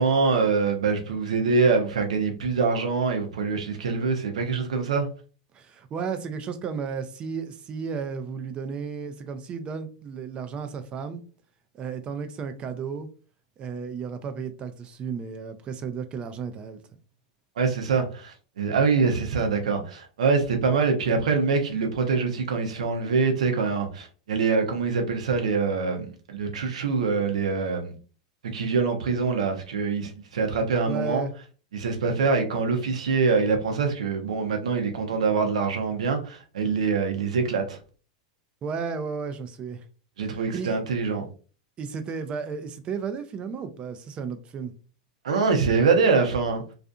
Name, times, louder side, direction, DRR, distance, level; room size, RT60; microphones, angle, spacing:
voice 1, 0.0-5.1 17.6-27.9 28.5-31.2 31.7-37.8 40.2-41.2 45.2-46.6, right 4 dB, 85° right, 0.7 m, -24 dB
voice 2, 5.5-11.2 11.8-13.1 13.6-16.8 30.8-31.3 38.6-39.8 40.3-40.8 41.8-44.7, right 6 dB, 30° right, 0.4 m, -33 dB
2.6 x 2.4 x 2.3 m
hypercardioid pair, 105°, 3 cm